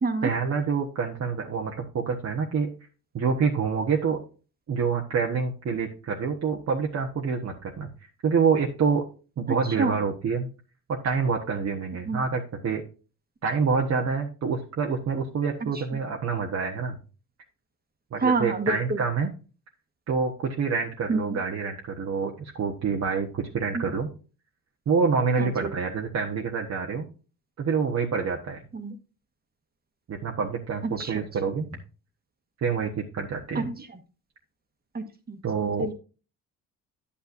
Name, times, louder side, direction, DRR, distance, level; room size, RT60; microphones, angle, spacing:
voice 1, 0.2-2.7 3.1-4.2 4.7-7.9 8.2-9.0 9.4-10.5 11.0-12.8 13.4-16.9 18.1-19.3 20.1-24.1 24.9-27.1 27.6-28.6 30.1-31.7 32.6-33.7 35.4-35.9, right 5 dB, 45° right, 1 dB, 1.3 m, -27 dB
voice 2, 18.2-18.8 21.1-21.2 23.7-23.9 25.4-25.7 28.7-28.9 31.0-31.1 33.5-33.6 34.9-35.4 35.8-35.9, right 3 dB, 25° right, 6 dB, 1.5 m, -26 dB
10.0 x 8.5 x 2.6 m, 0.35 s
cardioid pair, 90°, 35 cm